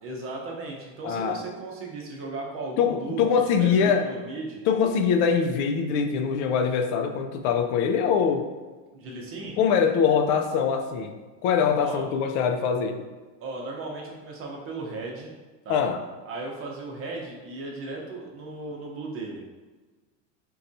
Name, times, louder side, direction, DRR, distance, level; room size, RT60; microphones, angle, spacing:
voice 1, 0.0-3.2 3.6-4.6 8.9-9.6 11.8-12.1 13.4-15.3 15.6-15.8 16.2-19.4, right 3 dB, 40° right, -1 dB, 0.7 m, -36 dB
voice 2, 1.0-1.4 2.8-4.1 4.7-8.5 9.6-11.1 11.4-13.0 15.7-16.0, left 6 dB, 70° left, 5 dB, 0.5 m, -23 dB
4.0 x 2.3 x 2.6 m, 1.3 s
supercardioid pair, 135°, 36 cm